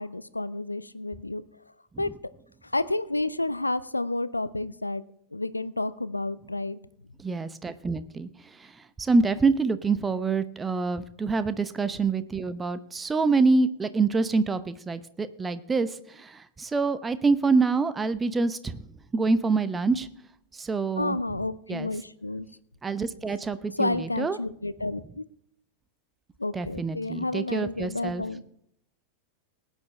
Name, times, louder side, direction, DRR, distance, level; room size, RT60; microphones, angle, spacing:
voice 1, 0.0-1.4 2.0-2.1 2.6-5.0 5.3-6.8 21.0-22.5 23.8-25.2 26.4-28.4, left 2 dB, 85° left, 16 dB, 0.6 m, -30 dB
voice 2, 7.2-8.3 9.0-18.8 19.1-20.1 20.6-21.2 21.7-21.9 22.8-24.4 26.5-28.2, right 4 dB, 15° right, 13 dB, 0.8 m, -26 dB
19.0 x 9.1 x 3.3 m, 0.70 s
figure-of-eight pair, 90°, 0 cm